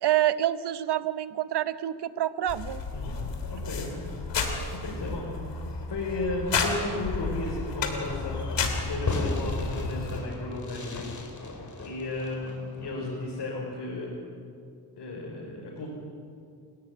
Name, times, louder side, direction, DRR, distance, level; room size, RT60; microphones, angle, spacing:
voice 1, 0.0-2.8, right 12 dB, 75° right, 14 dB, 1.0 m, -27 dB
sound 1, 2.5-10.2, left 4 dB, 85° left, 3.2 m, -32 dB
voice 2, 2.9-4.1 4.7-5.6 5.9-8.5 8.9-11.2 11.5-14.1 15.0-15.9, left 2 dB, 70° left, -4 dB, 5.3 m, -34 dB
Fireworks, 8.1-13.3, left 2 dB, 45° left, 3.9 m, -37 dB
29.5 x 13.5 x 9.7 m, 2.5 s
cardioid pair, 90°, 41 cm